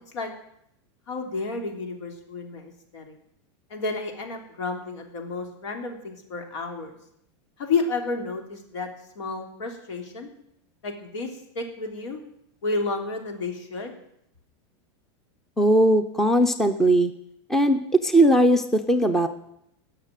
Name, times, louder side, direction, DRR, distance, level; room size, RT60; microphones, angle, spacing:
voice 1, 1.1-3.2 3.7-6.9 7.6-8.9 9.2-10.3 10.8-11.3 11.6-12.2 12.6-13.9, left 3 dB, 85° left, 4 dB, 3.5 m, -31 dB
voice 2, 15.6-17.1 17.5-19.3, right 1 dB, 5° left, 10 dB, 0.5 m, -19 dB
18.5 x 6.7 x 9.1 m, 0.76 s
supercardioid pair, 175°, 15 cm